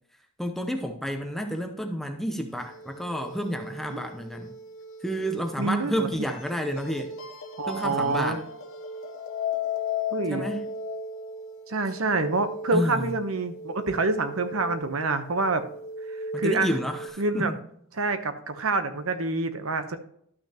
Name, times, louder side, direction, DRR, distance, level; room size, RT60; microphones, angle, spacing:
voice 1, 0.4-4.5 5.0-7.1 7.7-8.4 10.3-10.6 12.7-13.1 16.3-17.6, equal, ahead, 4 dB, 0.6 m, -30 dB
sound 1, 2.6-17.1, left 3 dB, 65° left, 0.9 m, -37 dB
voice 2, 5.6-6.1 7.6-8.4 10.1-10.5 11.7-15.6 16.4-16.7 17.2-17.5 18.0-20.0, right 3 dB, 70° right, 9 dB, 0.9 m, -27 dB
12.0 x 6.1 x 2.9 m, 0.68 s
head